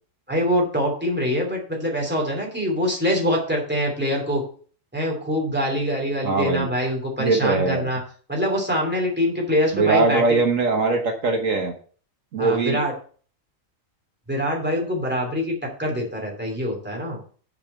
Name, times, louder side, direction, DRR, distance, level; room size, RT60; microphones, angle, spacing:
voice 1, 0.3-4.4 4.9-8.0 8.3-10.2 12.4-12.9 14.3-15.5 15.8-17.2, equal, 5° right, -1 dB, 2.8 m, -24 dB
voice 2, 6.2-6.7 7.2-7.9 9.7-11.7 12.3-12.8, right 3 dB, 70° right, 3 dB, 1.6 m, -21 dB
6.9 x 5.2 x 7.0 m, 0.43 s
omnidirectional pair, 1.4 m